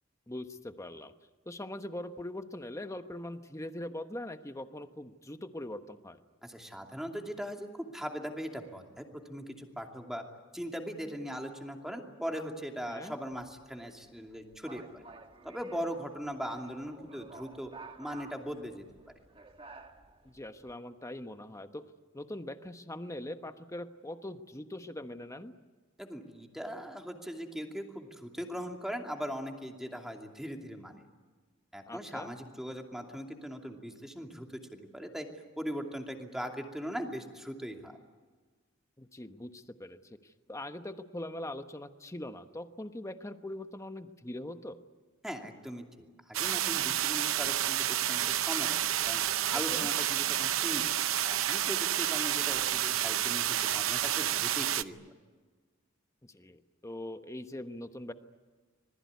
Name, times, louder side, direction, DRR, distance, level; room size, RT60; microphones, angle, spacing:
voice 1, 0.3-1.1 1.4-6.2 12.9-13.2 20.2-21.8 22.1-25.5 31.9-32.3 39.0-44.8 49.5-49.9 56.2-58.1, left 1 dB, 15° left, 8 dB, 1.2 m, -42 dB
voice 2, 6.4-10.2 10.5-15.0 15.4-17.7 18.0-18.8 26.0-31.0 31.7-35.3 35.6-37.9 45.2-45.8 46.3-48.8 49.1-49.2 49.5-50.8 51.2-55.0, equal, ahead, 3 dB, 2.7 m, -40 dB
sound 1, 13.3-20.7, right 3 dB, 25° right, 1.5 m, -53 dB
sound 2, 46.3-54.8, right 12 dB, 80° right, 0.7 m, -30 dB
26.5 x 20.0 x 9.6 m, 1.4 s
head